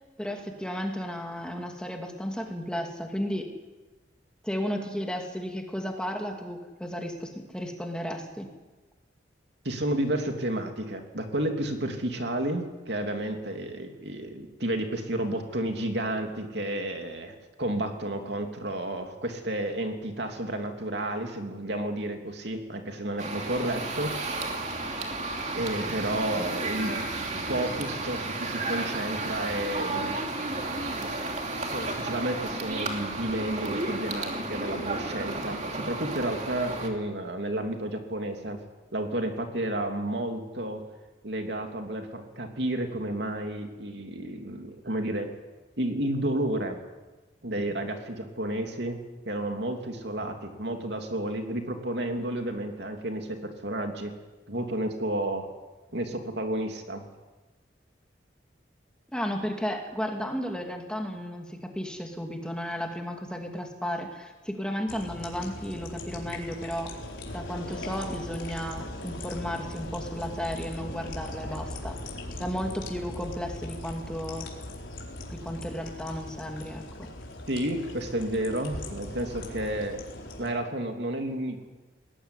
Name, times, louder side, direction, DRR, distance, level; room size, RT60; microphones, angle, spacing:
voice 1, 0.2-3.5 4.4-8.5 59.1-67.0 67.3-72.0 72.4-74.5 75.3-77.1, equal, 5° left, 2 dB, 2.5 m, -34 dB
voice 2, 9.6-24.4 25.5-26.9 27.5-30.1 31.0-31.2 31.6-38.6 38.9-40.8 41.2-45.3 45.8-46.8 47.4-49.0 49.2-54.1 54.5-55.5 55.9-57.0 77.5-80.0 80.4-81.6, right 1 dB, 60° right, 4 dB, 3.0 m, -31 dB
sound 1, 23.2-36.9, right 2 dB, 35° right, 2.9 m, -32 dB
sound 2, 64.9-80.5, left 1 dB, 90° left, 4.5 m, -39 dB
21.0 x 18.5 x 9.9 m, 1.2 s
head